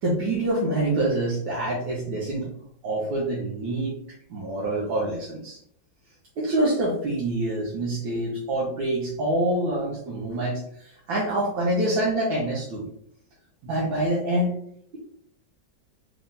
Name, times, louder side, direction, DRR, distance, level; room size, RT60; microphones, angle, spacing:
voice 1, 0.0-2.5 2.8-3.9 4.3-5.6 6.4-12.9 13.6-14.5, right 1 dB, 85° right, -6 dB, 1.7 m, -26 dB
4.3 x 2.6 x 3.5 m, 0.69 s
omnidirectional pair, 2.1 m